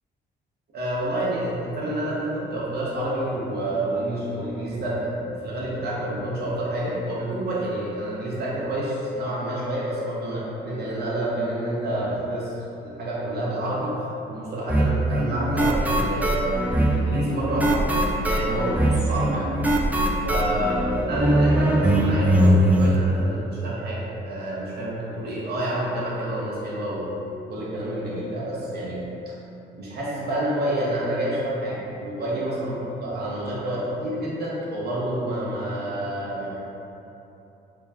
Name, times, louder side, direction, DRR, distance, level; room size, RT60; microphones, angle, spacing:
voice 1, 0.7-13.9 14.3-17.8 18.2-19.5 20.2-29.1 29.8-36.6, right 1 dB, 55° right, -7 dB, 0.9 m, -28 dB
sound 1, 14.7-23.0, right 1 dB, 10° right, 0.4 m, -21 dB
3.4 x 3.0 x 3.4 m, 2.9 s
cardioid pair, 90°, 20 cm